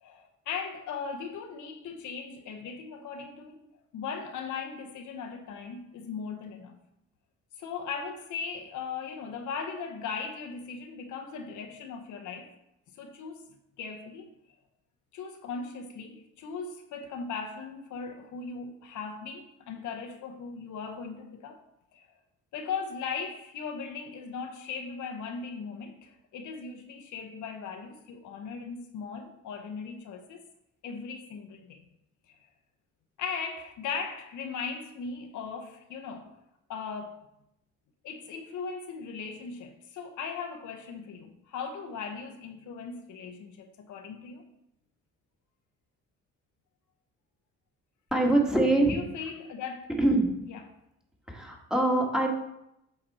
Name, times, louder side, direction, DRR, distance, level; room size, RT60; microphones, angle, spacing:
voice 1, 0.0-3.6 3.9-6.8 7.6-12.5 13.0-14.3 15.1-21.6 21.9-22.1 22.5-30.4 30.8-31.9 32.3-32.4 33.2-36.3 36.7-37.2 38.0-44.4 48.9-49.9 50.5-50.7, left 5 dB, 75° left, 1.0 m, -38 dB
voice 2, 48.1-49.0 50.0-50.3 51.3-52.3, right 2 dB, ahead, 1.6 m, -24 dB
8.1 x 4.2 x 4.2 m
cardioid pair, 90°, 30 cm